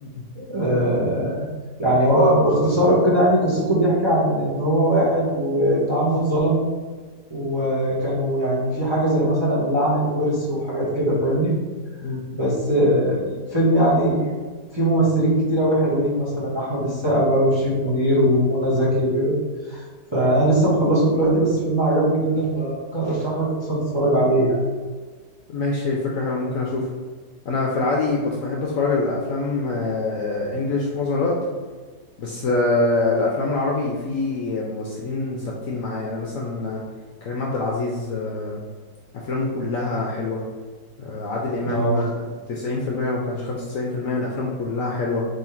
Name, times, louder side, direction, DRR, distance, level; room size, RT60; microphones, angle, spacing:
voice 1, 0.3-1.4 1.8-6.6 7.3-11.5 12.3-14.3 14.7-19.3 19.7-19.8 20.1-24.6 41.6-42.0, right 1 dB, 20° right, -6 dB, 0.8 m, -20 dB
voice 2, 25.5-26.9 27.4-31.3 32.2-36.8 37.2-38.6 39.1-40.4 41.0-45.3, left 3 dB, 65° left, -2 dB, 0.9 m, -25 dB
3.6 x 3.1 x 4.3 m, 1.5 s
omnidirectional pair, 1.8 m